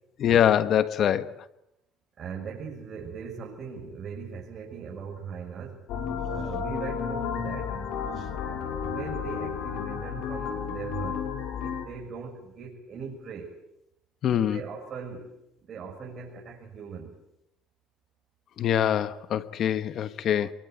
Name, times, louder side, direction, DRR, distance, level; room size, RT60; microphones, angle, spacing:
voice 1, 0.2-1.3 14.2-14.6 18.6-20.5, left 10 dB, 55° left, 1.4 m, -24 dB
voice 2, 2.2-7.8 8.3-11.3 11.6-13.5 14.4-15.3 15.6-17.2, right 6 dB, 45° right, 6.9 m, -40 dB
sound 1, 5.9-11.9, left 7 dB, 75° left, 6.2 m, -32 dB
27.5 x 23.0 x 8.1 m
cardioid pair, 105°, 0 cm